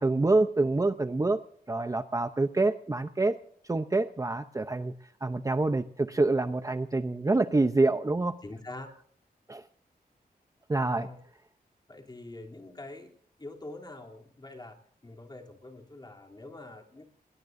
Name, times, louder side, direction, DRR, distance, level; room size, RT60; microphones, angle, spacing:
voice 1, 0.0-1.4 1.7-3.4 3.7-4.9 5.2-8.4 9.5-9.6 10.7-11.1, right 2 dB, 20° right, 9 dB, 0.7 m, -26 dB
voice 2, 8.4-9.0 10.9-11.2 11.9-13.1 13.4-17.0, left 2 dB, 25° left, 1 dB, 3.1 m, -45 dB
21.0 x 20.5 x 2.6 m, 0.62 s
wide cardioid pair, 125°, 16 cm